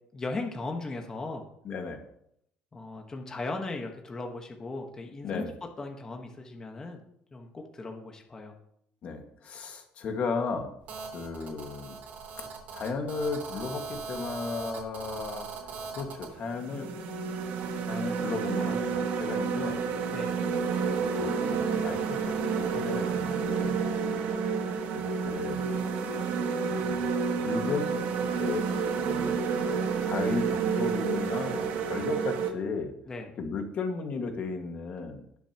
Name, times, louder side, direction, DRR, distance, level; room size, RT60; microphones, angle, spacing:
voice 1, 0.1-1.4 2.7-5.5 5.8-7.0 7.3-8.5 20.1-20.4 33.1-33.3, left 3 dB, 20° left, 3 dB, 1.4 m, -37 dB
voice 2, 1.7-2.0 5.2-5.5 9.0-10.7 11.1-12.0 12.4-15.5 15.9-16.9 17.8-19.8 20.8-20.9 21.2-23.8 24.9-25.8 26.7-28.0 28.4-28.6 29.0-29.4 30.0-32.9 33.4-35.4, left 4 dB, 45° left, 4 dB, 1.8 m, -35 dB
Telephone, 10.9-16.3, right 5 dB, 55° right, 3.5 m, -40 dB
sound 1, 15.6-15.7 16.3-32.5, right 5 dB, 75° right, 1.7 m, -30 dB
20.0 x 6.9 x 3.0 m, 0.73 s
cardioid pair, 140°, 3 cm